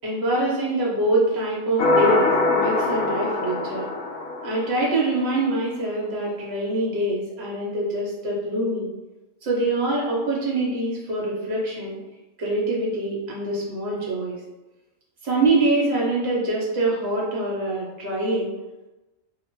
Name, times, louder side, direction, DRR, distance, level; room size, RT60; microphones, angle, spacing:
voice 1, 0.0-3.9 4.4-8.9 9.4-12.0 12.4-14.4 15.2-18.5, right 2 dB, 55° right, -4 dB, 1.1 m, -24 dB
sound 1, 1.8-5.2, left 2 dB, 75° left, 0.9 m, -23 dB
2.8 x 2.4 x 3.0 m, 1.1 s
omnidirectional pair, 1.3 m